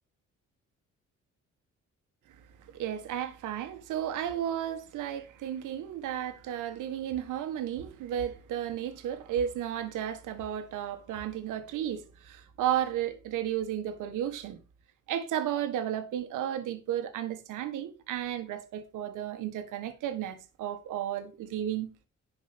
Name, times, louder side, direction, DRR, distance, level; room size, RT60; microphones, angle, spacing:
voice 1, 2.7-14.6 15.1-21.9, right 10 dB, 90° right, 1.7 m, -33 dB
11.0 x 5.2 x 6.8 m
cardioid pair, 90°, 30 cm